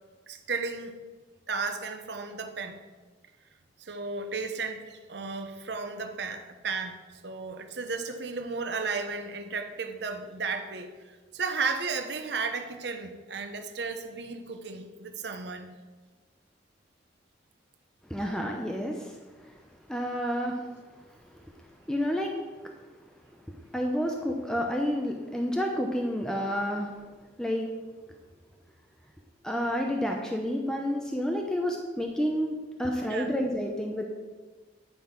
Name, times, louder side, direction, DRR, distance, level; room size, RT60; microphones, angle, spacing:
voice 1, 0.3-0.9 1.5-2.8 3.8-7.0 7.2-15.7 33.1-33.3, right 4 dB, 65° right, 6 dB, 0.9 m, -34 dB
voice 2, 18.1-19.5 19.9-20.6 21.9-22.4 23.5-26.9 27.4-27.7 29.4-34.0, equal, 5° left, 1 dB, 0.7 m, -30 dB
9.6 x 5.4 x 5.9 m, 1.3 s
head